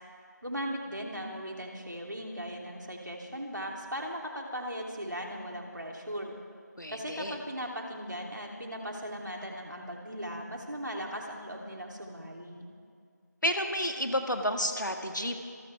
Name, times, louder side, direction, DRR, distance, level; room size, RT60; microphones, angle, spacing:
voice 1, 0.4-6.3 6.9-12.7, equal, 80° right, 0 dB, 3.2 m, -38 dB
voice 2, 6.8-7.4 13.4-15.4, equal, 85° left, 5 dB, 2.0 m, -31 dB
26.5 x 13.5 x 3.5 m, 2.3 s
figure-of-eight pair, 175°, 10 cm